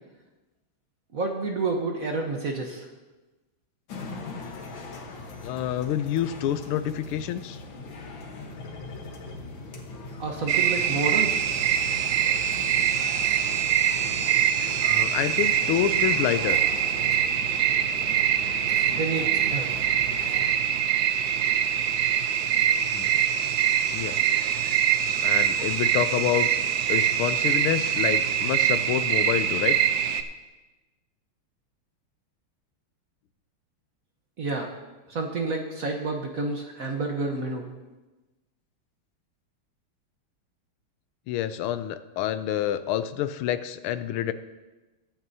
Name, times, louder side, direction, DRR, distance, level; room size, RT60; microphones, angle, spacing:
voice 1, 1.1-2.9 10.2-11.5 18.9-19.7 34.4-34.7 35.1-37.6, right 3 dB, 50° right, 2 dB, 1.2 m, -29 dB
sound 1, 3.9-20.5, left 3 dB, 60° left, 1.9 m, -40 dB
voice 2, 5.4-7.6 14.8-16.6 22.9-23.1 23.9-24.2 25.2-26.5 26.9-29.8 41.3-44.3, left 11 dB, 80° left, 12 dB, 1.5 m, -28 dB
sound 2, 10.5-30.2, right 9 dB, 80° right, 0.8 m, -24 dB
21.5 x 8.8 x 2.7 m, 1.1 s
omnidirectional pair, 2.4 m